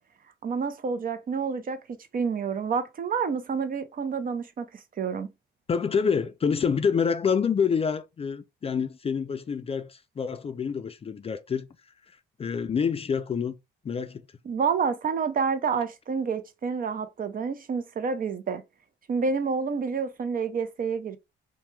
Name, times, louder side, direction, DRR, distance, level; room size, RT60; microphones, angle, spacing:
voice 1, 0.4-1.8 2.1-4.7 5.0-5.3 14.5-18.6 19.1-21.2, right 5 dB, 45° right, 0.6 m, -28 dB
voice 2, 5.7-11.7 12.4-13.5 13.8-14.2, left 6 dB, 30° left, 0.4 m, -27 dB
2.8 x 2.2 x 3.2 m
cardioid pair, 90°, 20 cm